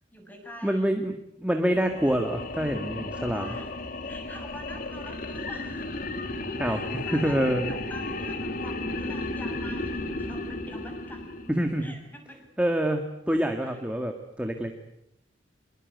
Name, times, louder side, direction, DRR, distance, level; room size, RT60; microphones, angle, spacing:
voice 1, 0.1-0.9 3.1-3.7 4.0-5.8 6.6-11.3 11.8-12.5 13.6-13.8, equal, 10° left, 4 dB, 6.8 m, -45 dB
voice 2, 0.6-1.1 1.4-3.5 6.6-7.7 11.5-11.9 12.6-14.7, equal, 5° right, 4 dB, 1.9 m, -26 dB
sound 1, 1.7-12.0, left 2 dB, 50° left, 3.0 m, -34 dB
26.0 x 22.5 x 9.5 m, 0.79 s
head